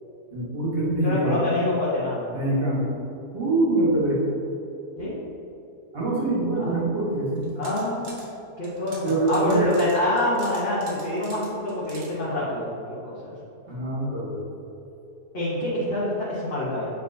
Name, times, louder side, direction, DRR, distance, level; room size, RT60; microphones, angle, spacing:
voice 1, 0.3-1.4 2.3-2.9 3.3-4.2 5.9-7.5 9.0-9.8 13.7-14.4, right 2 dB, 40° right, -6 dB, 1.6 m, -24 dB
voice 2, 1.0-2.3 5.0-5.1 6.6-6.8 7.6-8.1 8.6-12.8 13.0-13.3 15.3-16.9, left 1 dB, 40° left, -9 dB, 1.1 m, -26 dB
sound 1, 7.4-8.3 8.6-12.1, right 3 dB, 85° right, 1.6 m, -45 dB
8.0 x 4.4 x 2.7 m, 2.9 s
omnidirectional pair, 1.7 m